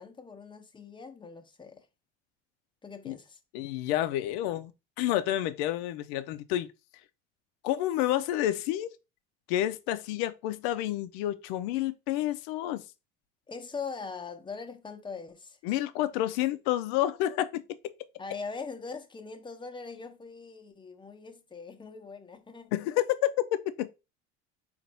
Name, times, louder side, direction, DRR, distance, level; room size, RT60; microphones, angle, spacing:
voice 1, 0.0-1.9 2.8-3.4 13.5-15.6 18.2-22.7, left 4 dB, 15° left, 0.8 m, -41 dB
voice 2, 3.5-4.7 5.0-6.7 7.6-8.9 9.5-12.8 15.6-17.6 22.7-23.3 23.8-23.9, left 13 dB, 75° left, 0.6 m, -29 dB
4.0 x 2.5 x 4.2 m
hypercardioid pair, 80°, 32 cm